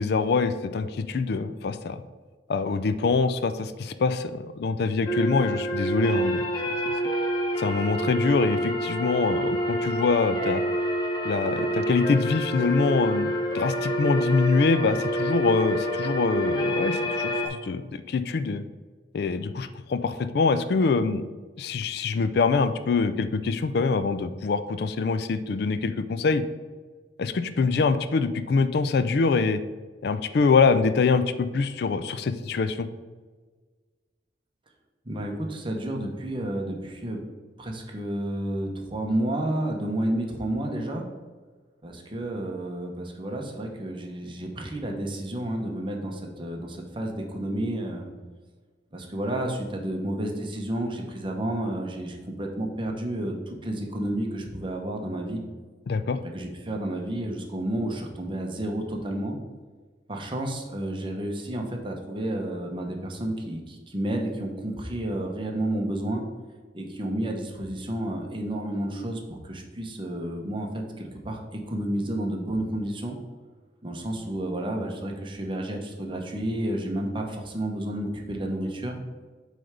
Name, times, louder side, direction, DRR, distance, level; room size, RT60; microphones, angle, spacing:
voice 1, 0.0-2.0 2.5-6.5 7.6-10.6 11.2-18.6 19.1-21.2 21.6-26.4 27.2-29.6 30.0-32.9 55.9-56.2, left 4 dB, 65° left, 11 dB, 0.4 m, -24 dB
sound 1, 5.1-17.5, equal, 25° left, 0.9 m, -27 dB
voice 2, 35.0-37.2 37.6-41.0 41.8-48.1 48.9-55.4 56.2-59.4 60.1-66.2 66.7-73.1 73.8-79.0, right 1 dB, 30° right, 1 dB, 1.0 m, -31 dB
7.8 x 3.4 x 5.0 m, 1.4 s
head